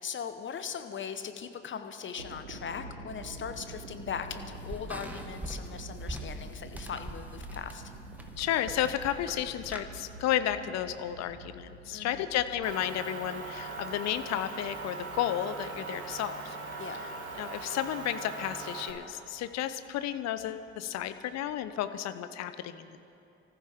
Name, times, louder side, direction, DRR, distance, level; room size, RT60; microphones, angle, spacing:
voice 1, 0.0-7.8 11.9-12.3 16.8-17.1, left 7 dB, 40° left, 8 dB, 1.1 m, -39 dB
sound 1, 2.0-21.7, right 2 dB, 90° right, 1.0 m, -48 dB
sound 2, 3.2-9.9, right 1 dB, 5° right, 1.7 m, -44 dB
voice 2, 8.4-16.6 17.3-23.0, left 11 dB, 60° left, 12 dB, 0.8 m, -32 dB
Motor vehicle (road) / Engine, 12.6-18.9, right 4 dB, 55° right, 2.6 m, -40 dB
24.5 x 14.5 x 3.7 m, 2.7 s
figure-of-eight pair, 45°, 31 cm